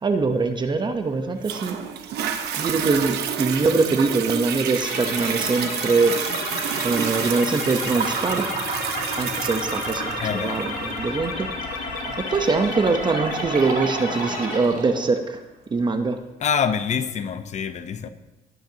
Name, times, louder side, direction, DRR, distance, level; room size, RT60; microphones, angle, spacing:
voice 1, 0.0-1.8 2.5-6.2 6.8-8.6 9.2-11.6 12.2-15.4 15.7-16.2, right 4 dB, 25° right, 0.9 m, -23 dB
Toilet flush, 1.4-14.5 15.1-15.2, right 8 dB, 75° right, 1.1 m, -30 dB
sound 1, 4.8-14.6, left 3 dB, 85° left, 4.0 m, -31 dB
sound 2, 7.9-15.1, right 5 dB, 55° right, 1.7 m, -33 dB
voice 2, 10.2-10.6 16.4-18.1, left 7 dB, 45° left, 0.7 m, -25 dB
19.0 x 9.0 x 2.9 m
cardioid pair, 110°, 17 cm